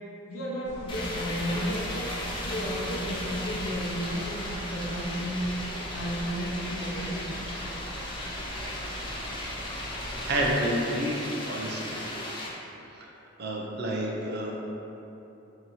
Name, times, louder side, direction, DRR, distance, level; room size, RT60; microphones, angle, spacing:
voice 1, 0.3-2.1 2.4-5.5 5.9-7.3, equal, 80° left, -4 dB, 0.7 m, -33 dB
sound 1, 0.6-10.5, right 1 dB, 35° right, 1.2 m, -41 dB
sound 2, 0.9-12.5, left 1 dB, 25° left, 0.4 m, -36 dB
voice 2, 10.3-12.0 13.4-14.6, right 1 dB, 50° right, -2 dB, 0.5 m, -29 dB
2.9 x 2.7 x 3.9 m, 3.0 s
head